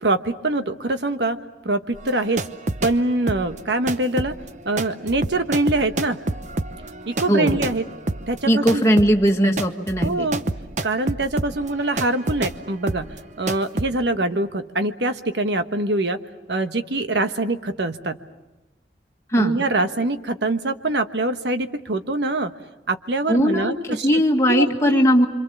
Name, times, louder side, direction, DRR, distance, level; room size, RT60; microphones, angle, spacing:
voice 1, 0.0-1.4 1.6-2.4 2.8-4.3 4.6-6.2 7.1-7.8 8.3-8.8 10.0-10.4 10.8-13.1 13.4-16.2 16.5-18.2 19.4-22.5 22.9-24.2 24.5-25.1, right 2 dB, 75° right, 8 dB, 1.3 m, -24 dB
sound 1, 2.0-3.0 3.3-12.6 12.9-13.2 13.5-13.9, right 2 dB, 45° right, 0.9 m, -28 dB
voice 2, 7.3-7.6 8.5-10.3 19.3-19.6 23.3-25.3, equal, 15° left, 1 dB, 2.0 m, -19 dB
26.5 x 26.0 x 7.2 m, 1.1 s
head